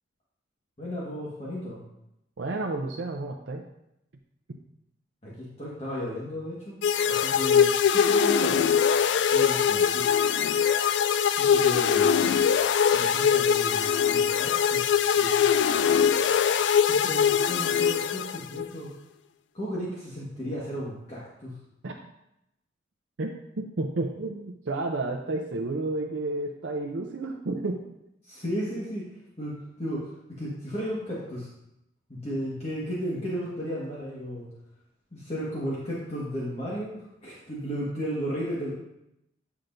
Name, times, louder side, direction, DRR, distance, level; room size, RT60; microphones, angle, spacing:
voice 1, 0.8-1.8 5.2-8.6 9.3-10.1 11.3-12.1 12.9-14.8 15.2-15.5 16.8-18.9 19.5-21.5 28.2-29.1 29.4-30.1 30.4-31.5 32.1-34.5 35.1-38.7, equal, 35° left, -7 dB, 1.5 m, -34 dB
voice 2, 2.4-3.7 4.5-4.6 21.8-22.0 23.2-27.9, right 2 dB, 70° right, 1 dB, 0.6 m, -31 dB
sound 1, 6.8-18.7, left 7 dB, 65° left, 0.3 m, -22 dB
9.7 x 5.8 x 2.6 m, 0.83 s
head